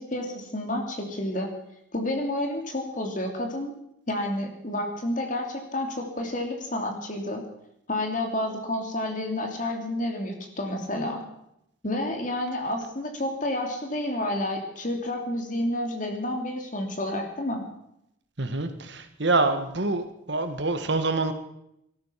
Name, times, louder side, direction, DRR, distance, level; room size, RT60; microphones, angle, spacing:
voice 1, 0.0-1.5 1.9-3.7 4.1-7.4 7.9-11.2 11.8-17.6, left 1 dB, 40° left, 3 dB, 3.0 m, -30 dB
voice 2, 18.4-21.3, right 3 dB, 60° right, 8 dB, 1.6 m, -26 dB
18.5 x 13.0 x 5.8 m, 0.79 s
head